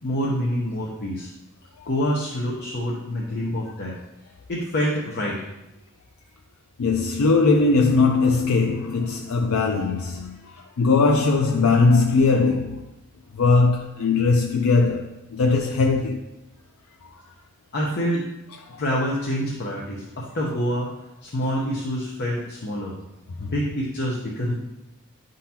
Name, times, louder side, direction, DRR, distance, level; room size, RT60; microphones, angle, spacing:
voice 1, 0.0-1.3 1.9-4.0 4.5-5.4 17.7-18.2 18.8-20.9 21.2-23.0 23.4-24.6, equal, 50° left, 0.9 m, -26 dB
voice 2, 6.8-12.8 13.3-16.2 17.1-17.2 18.7-18.8 23.4-23.5, left 3 dB, 75° left, 0.5 m, -20 dB
10.5 x 3.8 x 2.8 m
head